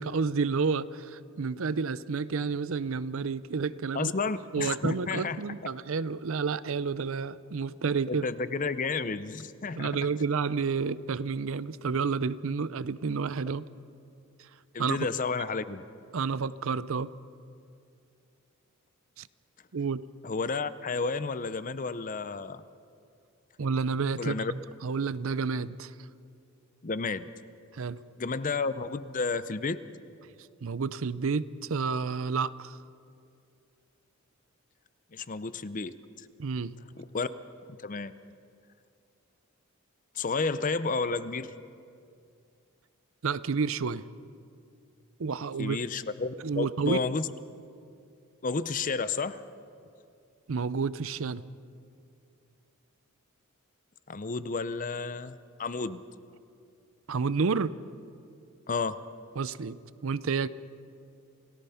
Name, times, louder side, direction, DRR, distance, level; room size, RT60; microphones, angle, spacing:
voice 1, 0.0-4.1 4.5-8.3 9.7-13.7 14.8-15.0 16.1-17.1 19.2-19.3 19.7-20.0 23.6-24.4 24.8-25.9 27.7-28.0 30.6-32.8 36.4-36.7 43.2-44.0 45.2-45.8 46.4-47.0 50.5-51.4 57.1-57.7 59.4-60.5, right 5 dB, 65° right, 16 dB, 0.5 m, -30 dB
voice 2, 3.9-5.4 8.1-9.9 14.7-15.8 20.2-22.6 24.2-24.5 26.8-27.3 28.2-29.8 35.1-35.9 37.0-37.3 37.8-38.1 40.2-41.5 45.6-47.3 48.4-49.4 54.1-56.0 58.7-59.0, left 4 dB, 35° left, 14 dB, 0.6 m, -31 dB
28.5 x 17.5 x 5.7 m, 2.4 s
head